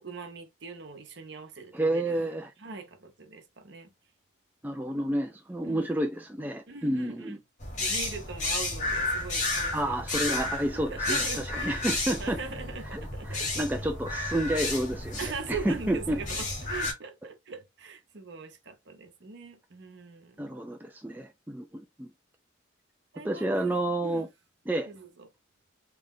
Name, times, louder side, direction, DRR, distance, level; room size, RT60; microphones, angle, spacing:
voice 1, 0.0-2.3 2.6-3.9 5.6-5.8 6.7-7.4 7.8-10.0 10.4-11.7 12.2-13.9 15.2-20.4 23.1-23.7 24.0-24.3 24.9-25.3, right 4 dB, 55° right, 0.9 m, -41 dB
voice 2, 1.7-2.5 4.6-7.4 9.7-11.2 11.6-12.4 12.9-13.0 13.3-15.2 15.7-16.2 20.4-22.1 23.2-24.3 24.7-24.9, right 1 dB, 10° right, 0.3 m, -30 dB
sound 1, 7.6-16.9, left 2 dB, 35° left, 1.3 m, -32 dB
3.3 x 2.4 x 3.6 m
head